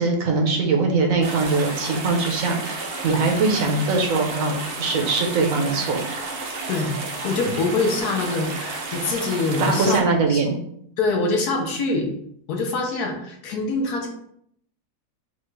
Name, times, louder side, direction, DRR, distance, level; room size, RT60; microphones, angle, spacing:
voice 1, 0.0-6.0 9.6-10.6, right 3 dB, 60° right, 2 dB, 1.0 m, -22 dB
sound 1, 1.2-10.0, right 3 dB, 80° right, 0.5 m, -32 dB
voice 2, 7.2-10.0 10.3-10.4 11.0-12.1 12.5-14.1, left 3 dB, 70° left, 2 dB, 1.3 m, -24 dB
5.6 x 2.4 x 3.1 m, 0.70 s
omnidirectional pair, 1.9 m